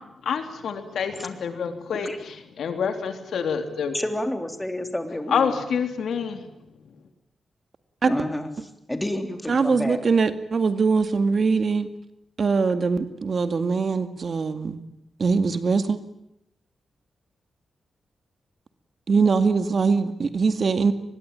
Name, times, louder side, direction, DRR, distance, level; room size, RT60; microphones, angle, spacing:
voice 1, 0.2-4.0 5.3-6.4, left 6 dB, 85° left, 7 dB, 3.3 m, -27 dB
voice 2, 3.9-5.6 8.0-8.5 8.9-10.0, left 1 dB, 10° left, 6 dB, 3.4 m, -29 dB
voice 3, 9.5-11.9 12.4-14.8 15.2-16.0 19.1-20.9, right 4 dB, 50° right, 10 dB, 2.1 m, -22 dB
24.5 x 21.0 x 9.1 m, 0.82 s
cardioid pair, 100°, 0 cm